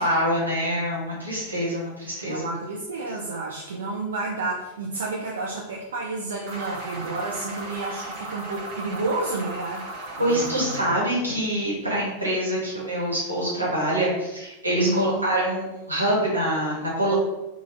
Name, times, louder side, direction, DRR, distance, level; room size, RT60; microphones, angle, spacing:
voice 1, 0.0-2.5 10.2-17.1, equal, 85° right, -6 dB, 1.2 m, -25 dB
voice 2, 2.2-11.0 14.8-15.2, right 3 dB, 65° right, -2 dB, 0.4 m, -31 dB
sound 1, 6.5-10.9, right 1 dB, 45° right, 0.8 m, -36 dB
3.2 x 2.3 x 2.5 m, 0.99 s
figure-of-eight pair, 90°, 0 cm